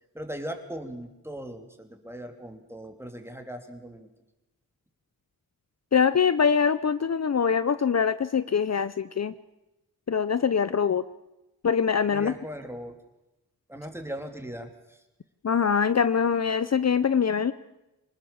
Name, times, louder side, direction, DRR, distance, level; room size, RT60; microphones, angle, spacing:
voice 1, 0.1-4.1 12.1-12.9 13.7-15.0, equal, 5° right, 5 dB, 3.4 m, -39 dB
voice 2, 5.9-9.3 10.1-11.0 11.6-12.3 15.4-17.5, left 6 dB, 45° left, 14 dB, 0.7 m, -23 dB
26.0 x 19.5 x 7.3 m, 0.97 s
wide cardioid pair, 95°, 35 cm